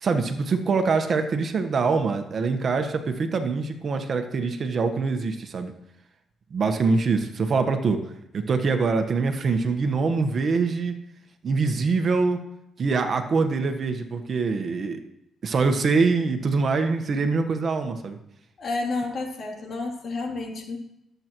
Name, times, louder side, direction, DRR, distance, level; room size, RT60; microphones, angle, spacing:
voice 1, 0.0-5.7 6.5-8.0 8.3-11.0 11.4-12.4 12.8-15.0 15.4-18.2, right 4 dB, 50° right, 7 dB, 1.2 m, -24 dB
voice 2, 18.6-20.8, left 3 dB, 55° left, 0 dB, 3.1 m, -30 dB
20.0 x 8.0 x 3.1 m, 0.81 s
cardioid pair, 90°, 0 cm